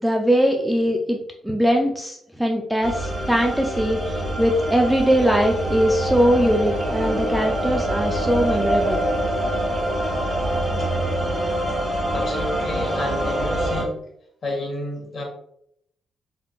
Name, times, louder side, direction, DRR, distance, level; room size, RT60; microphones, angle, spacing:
voice 1, 0.0-1.2 1.4-9.1, equal, ahead, 2 dB, 0.4 m, -21 dB
sound 1, 2.8-13.8, right 1 dB, 35° right, 1.6 m, -25 dB
voice 2, 12.1-14.0 14.4-15.2, left 1 dB, 45° left, 0 dB, 1.3 m, -30 dB
4.8 x 3.6 x 2.4 m, 0.71 s
cardioid pair, 135°, 0 cm